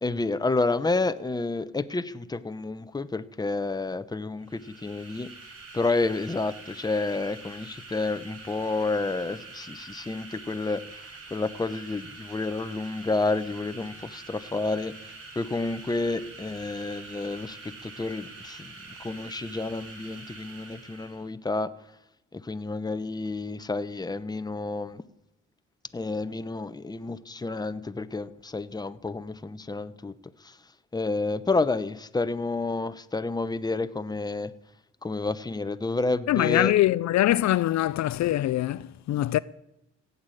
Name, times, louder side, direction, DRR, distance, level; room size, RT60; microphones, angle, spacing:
voice 1, 0.0-5.3 5.7-14.9 15.3-18.7 19.0-21.7 22.3-25.0 25.9-30.1 30.4-30.6 30.9-34.5 35.0-36.7, left 3 dB, 15° left, 0.8 m, -30 dB
sound 1, 4.4-21.3, right 3 dB, 50° right, 4.8 m, -45 dB
voice 2, 36.3-39.4, left 14 dB, 65° left, 0.5 m, -23 dB
15.5 x 8.3 x 9.1 m
cardioid pair, 90°, 30 cm